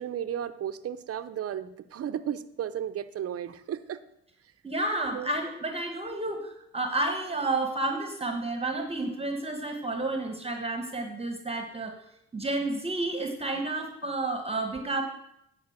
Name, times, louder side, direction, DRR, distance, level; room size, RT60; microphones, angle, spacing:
voice 1, 0.0-4.0 5.1-5.3, right 9 dB, 50° right, 12 dB, 0.7 m, -34 dB
voice 2, 4.6-11.9 12.3-15.0, right 2 dB, 20° right, 5 dB, 1.3 m, -31 dB
9.6 x 5.1 x 8.0 m, 0.80 s
cardioid pair, 90°, 30 cm